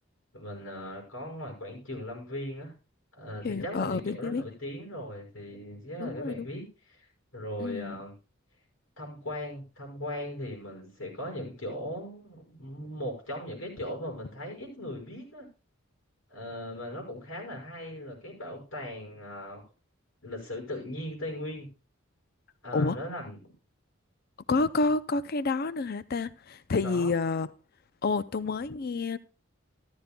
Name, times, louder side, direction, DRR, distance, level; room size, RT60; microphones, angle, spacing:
voice 1, 0.3-2.7 3.1-6.7 6.9-7.0 7.3-8.1 9.0-15.5 16.3-19.6 20.2-21.7 22.6-23.4 26.8-27.1, left 1 dB, 80° left, 5.7 m, -38 dB
voice 2, 3.4-4.4 6.0-6.5 7.6-8.0 22.7-23.0 24.5-27.5 28.0-29.2, left 3 dB, 50° left, 0.5 m, -29 dB
14.0 x 13.0 x 2.3 m
head